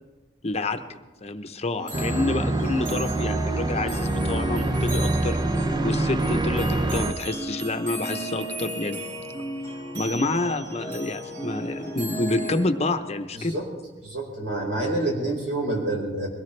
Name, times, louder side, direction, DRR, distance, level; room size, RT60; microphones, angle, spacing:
voice 1, 0.4-0.8 1.2-5.4 5.8-9.0 9.9-13.5, left 2 dB, 35° left, 8 dB, 0.8 m, -28 dB
sound 1, 1.8-12.6, right 1 dB, 45° right, 5.4 m, -35 dB
sound 2, 1.9-7.1, right 2 dB, 25° right, 0.6 m, -25 dB
voice 2, 13.3-13.7 14.0-16.3, right 2 dB, 70° right, -1 dB, 4.5 m, -27 dB
22.5 x 17.5 x 3.3 m, 1.2 s
head